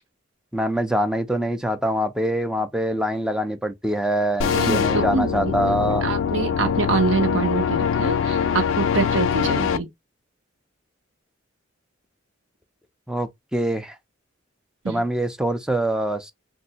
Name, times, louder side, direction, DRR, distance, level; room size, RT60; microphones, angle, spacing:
voice 1, 0.5-6.0 13.1-14.0 14.9-16.3, right 1 dB, 5° right, 0.4 m, -24 dB
sound 1, 4.4-9.8, left 7 dB, 90° left, 0.3 m, -23 dB
voice 2, 4.5-9.9 14.8-15.0, right 4 dB, 75° right, 0.8 m, -25 dB
3.2 x 2.5 x 2.8 m
head